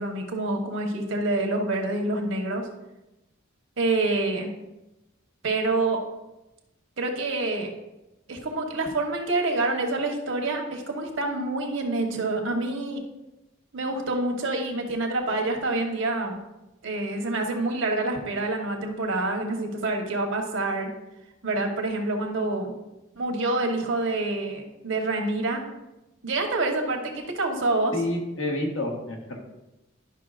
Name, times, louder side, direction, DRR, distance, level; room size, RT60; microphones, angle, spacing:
voice 1, 0.0-2.7 3.8-4.5 5.4-6.0 7.0-7.7 8.3-13.0 13.7-16.4 16.8-20.9 21.4-22.7 23.1-25.6 26.2-27.9, right 2 dB, 70° right, 2 dB, 1.2 m, -27 dB
voice 2, 27.9-29.4, left 1 dB, 75° left, 0 dB, 1.5 m, -29 dB
11.0 x 5.7 x 2.5 m, 0.98 s
head